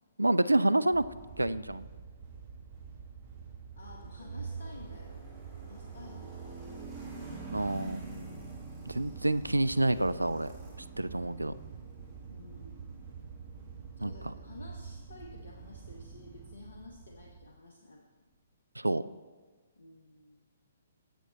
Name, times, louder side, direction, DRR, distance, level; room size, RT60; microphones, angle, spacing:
voice 1, 0.2-1.0 1.4-1.9 7.5-8.0 8.9-10.5 11.0-11.5 14.0-14.1 18.8-19.0, right 1 dB, 85° right, 15 dB, 0.3 m, -28 dB
sound 1, 0.9-17.5, right 6 dB, 35° right, 1.2 m, -48 dB
voice 2, 3.8-5.2 5.5-6.4 12.3-12.9 14.0-18.0 19.8-20.4, left 2 dB, 65° left, 0 dB, 0.9 m, -51 dB
sound 2, 3.9-17.1, right 3 dB, 15° right, 2.4 m, -48 dB
Organ, 4.2-15.2, right 4 dB, 55° right, 1.2 m, -50 dB
9.2 x 7.5 x 4.0 m, 1.4 s
figure-of-eight pair, 125°, 0 cm